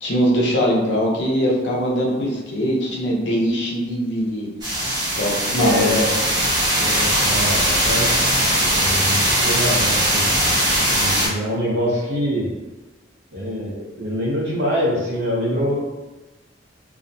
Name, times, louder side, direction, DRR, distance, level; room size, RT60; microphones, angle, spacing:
voice 1, 0.0-4.5 5.2-6.1, equal, 65° left, -2 dB, 0.6 m, -21 dB
sound 1, 4.6-11.3, right 1 dB, 20° right, 0.7 m, -20 dB
voice 2, 5.6-6.1 6.8-10.5 10.9-12.5 13.3-15.8, equal, 75° right, -5 dB, 0.7 m, -24 dB
Mechanisms, 5.9-8.2 8.5-9.8 10.1-11.2 11.5-11.6, left 1 dB, 15° left, 0.8 m, -34 dB
2.4 x 2.1 x 2.6 m, 1.1 s
head